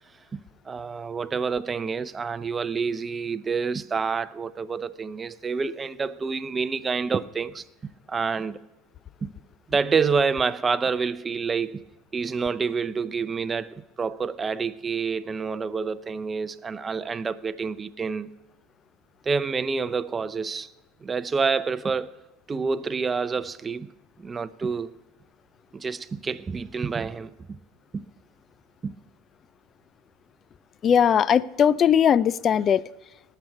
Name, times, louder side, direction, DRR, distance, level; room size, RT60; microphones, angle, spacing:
voice 1, 0.3-7.6 8.1-8.6 9.2-9.3 9.7-11.9 12.1-18.3 19.3-20.7 21.0-22.1 22.5-23.9 24.2-24.9 25.7-27.6 27.9-28.1 28.8-29.0, right 5 dB, 25° right, 0.6 m, -28 dB
voice 2, 30.8-32.8, left 8 dB, 35° left, 0.4 m, -19 dB
19.0 x 6.7 x 4.6 m
hypercardioid pair, 95°, 0 cm